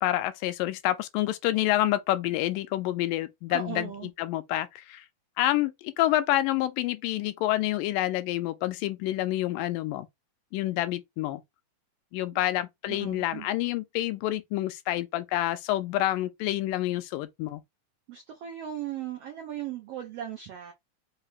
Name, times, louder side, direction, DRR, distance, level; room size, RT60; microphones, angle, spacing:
voice 1, 0.0-5.0 5.4-10.1 10.5-11.4 12.1-17.6, left 15 dB, 85° left, 2.2 m, -28 dB
voice 2, 3.5-4.1 12.9-13.5 18.1-20.7, right 10 dB, 85° right, 1.3 m, -37 dB
5.5 x 2.2 x 3.9 m
omnidirectional pair, 3.9 m